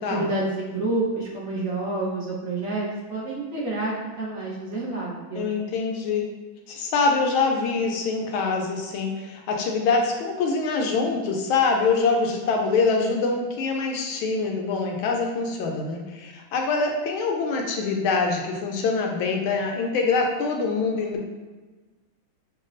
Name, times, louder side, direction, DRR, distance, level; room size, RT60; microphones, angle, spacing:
voice 1, 0.1-5.5, right 2 dB, 50° right, -5 dB, 1.1 m, -28 dB
voice 2, 5.3-6.3 6.7-21.2, left 4 dB, 80° left, 1 dB, 1.4 m, -24 dB
6.2 x 2.3 x 2.5 m, 1.3 s
omnidirectional pair, 2.2 m